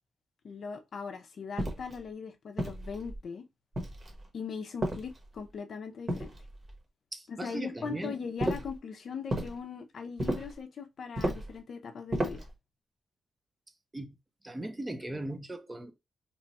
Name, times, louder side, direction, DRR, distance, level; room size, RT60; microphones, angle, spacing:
voice 1, 0.4-3.5 4.3-6.3 7.3-12.5, left 5 dB, 55° left, 0.5 m, -40 dB
sound 1, 1.6-2.0 2.6-3.2 3.7-4.3 4.8-5.5 6.1-6.8 8.4-8.8 9.3-9.6 10.2-10.6 11.2-11.6 12.1-12.5, right 1 dB, 35° right, 1.0 m, -33 dB
voice 2, 7.1-8.2 13.9-14.2 14.4-15.9, right 1 dB, 15° right, 0.5 m, -38 dB
3.0 x 2.3 x 4.0 m
wide cardioid pair, 135°, 0 cm